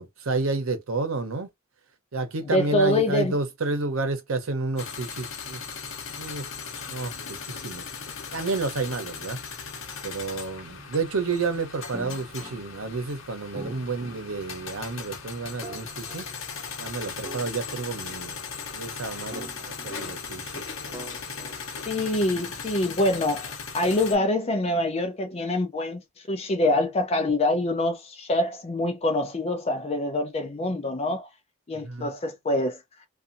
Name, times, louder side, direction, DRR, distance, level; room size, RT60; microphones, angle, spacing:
voice 1, 0.0-1.5 2.1-5.6 6.2-6.4 6.9-7.8 8.3-9.4 10.0-16.3 16.8-18.4 18.7-21.0 31.7-32.1, right 3 dB, 80° right, 0.8 m, -30 dB
voice 2, 2.5-3.4 21.9-31.3 31.7-32.8, left 1 dB, 30° left, 0.5 m, -25 dB
sound 1, 4.8-24.2, left 5 dB, 70° left, 0.9 m, -38 dB
sound 2, 11.9-13.1 13.5-14.7 15.6-16.8 17.2-18.6 19.3-20.5 20.9-22.3, right 1 dB, 15° right, 0.5 m, -44 dB
2.6 x 2.4 x 2.6 m
head